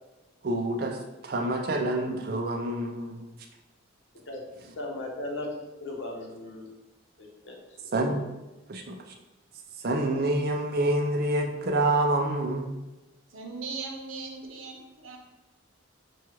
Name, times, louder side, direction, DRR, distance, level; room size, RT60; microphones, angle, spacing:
voice 1, 0.4-1.0 1.2-3.2 7.9-8.2 8.7-9.0 9.8-12.7, right 1 dB, 50° right, 2 dB, 0.5 m, -27 dB
voice 2, 4.1-4.5 4.8-6.7 7.2-7.8, left 2 dB, 60° left, -1 dB, 0.8 m, -37 dB
voice 3, 13.3-15.2, right 4 dB, 80° right, 2 dB, 0.7 m, -38 dB
6.1 x 2.3 x 3.0 m, 1.0 s
head